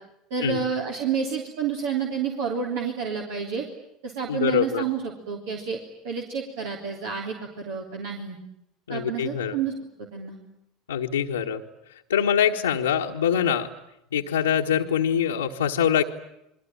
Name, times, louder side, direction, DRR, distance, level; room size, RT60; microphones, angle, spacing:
voice 1, 0.3-3.6 4.0-8.4 8.9-9.7 10.0-10.4, right 6 dB, 65° right, 1 dB, 3.4 m, -29 dB
voice 2, 4.3-4.8 8.9-9.6 10.9-11.6 11.9-13.7 14.1-16.0, left 8 dB, 80° left, -3 dB, 1.4 m, -24 dB
29.0 x 22.5 x 8.8 m, 0.83 s
figure-of-eight pair, 70°, 0 cm